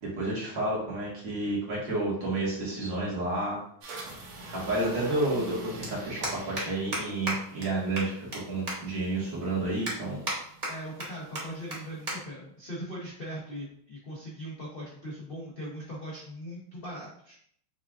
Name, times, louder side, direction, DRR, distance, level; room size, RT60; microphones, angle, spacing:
voice 1, 0.0-3.6 4.5-10.2, right 2 dB, 65° right, -6 dB, 2.2 m, -30 dB
sound 1, 3.5-3.6 5.0-5.1 5.3-5.5 5.8-5.9 6.2-6.6 6.9-7.0 7.3-7.4 7.6-7.7 8.0-8.4 8.7-8.8 9.2-9.3 9.9-10.4 10.6-11.1 11.4-11.5 11.7-11.8 12.1-12.2 12.5-12.7 13.5-13.7, right 1 dB, 45° right, 0.5 m, -32 dB
sound 2, 3.8-12.1, right 2 dB, 80° right, 1.6 m, -46 dB
voice 2, 10.7-17.4, equal, 80° left, -5 dB, 0.5 m, -40 dB
6.0 x 2.4 x 2.3 m, 0.65 s
omnidirectional pair, 2.3 m